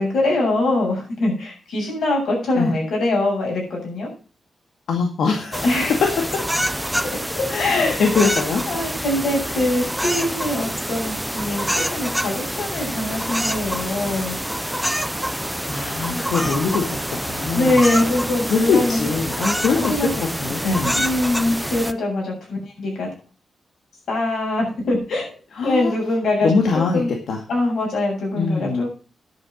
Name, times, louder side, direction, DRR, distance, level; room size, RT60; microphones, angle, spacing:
voice 1, 0.0-4.1 5.6-5.9 7.4-8.0 8.7-14.4 16.0-16.5 17.5-19.1 19.8-20.1 20.9-23.1 24.1-25.4 25.6-26.5 26.9-27.1 27.5-28.9, left 2 dB, 75° left, 0 dB, 7.0 m, -23 dB
voice 2, 4.9-5.6 6.0-6.5 7.5-8.6 15.1-15.4 15.6-17.9 18.4-21.1 25.6-26.0 26.4-27.4 28.3-28.9, left 4 dB, 90° left, 1 dB, 2.1 m, -23 dB
sound 1, 5.5-21.9, equal, ahead, 0.5 m, -26 dB
10.5 x 7.9 x 6.4 m, 0.35 s
wide cardioid pair, 170°, 0 cm